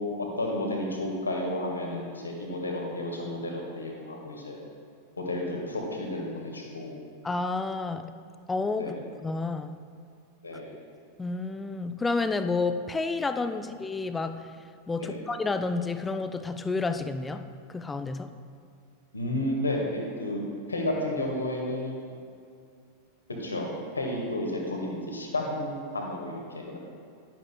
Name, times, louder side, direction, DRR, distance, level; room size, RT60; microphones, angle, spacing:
voice 1, 0.0-4.6 5.2-7.0 8.8-9.0 10.4-10.7 15.0-15.2 19.1-20.4 20.7-22.0 23.4-23.7 23.9-26.8, left 1 dB, 75° left, 0 dB, 1.6 m, -32 dB
voice 2, 7.2-8.1 8.5-8.9 9.2-9.8 11.2-14.5 14.9-18.3, left 3 dB, 10° left, 10 dB, 0.4 m, -30 dB
11.0 x 10.5 x 2.3 m, 2.3 s
figure-of-eight pair, 90°, 0 cm